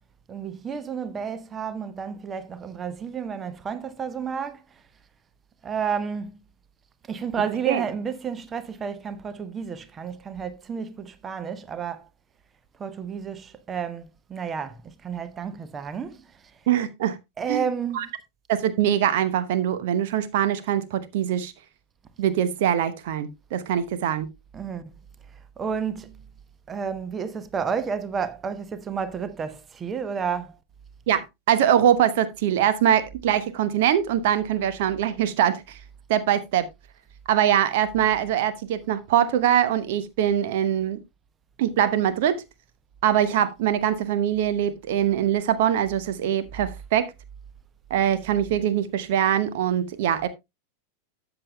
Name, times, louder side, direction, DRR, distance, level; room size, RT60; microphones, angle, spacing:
voice 1, 0.3-4.8 5.6-6.4 7.1-12.1 12.8-16.4 17.4-18.1 24.5-24.8 25.6-26.2 26.7-30.6, right 6 dB, 20° right, 0.8 m, -31 dB
voice 2, 16.7-17.2 17.5-17.7 17.9-18.1 18.5-21.5 22.2-24.3 31.1-35.8 36.1-36.7 37.3-41.0 41.6-42.4 43.0-47.1 47.9-50.3, right 10 dB, 50° right, 0.9 m, -23 dB
13.0 x 8.0 x 2.2 m
figure-of-eight pair, 90°, 0 cm